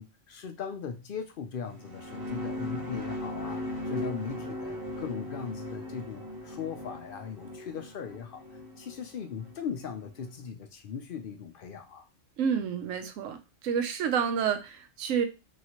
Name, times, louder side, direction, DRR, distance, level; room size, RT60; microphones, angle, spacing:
voice 1, 0.0-8.4 8.8-12.1, left 7 dB, 60° left, 6 dB, 0.6 m, -39 dB
sound 1, 1.6-10.3, left 1 dB, 20° right, 0.7 m, -38 dB
voice 2, 12.4-13.4 13.6-15.3, right 7 dB, 85° right, 7 dB, 1.0 m, -29 dB
3.1 x 2.8 x 2.8 m, 0.26 s
omnidirectional pair, 1.3 m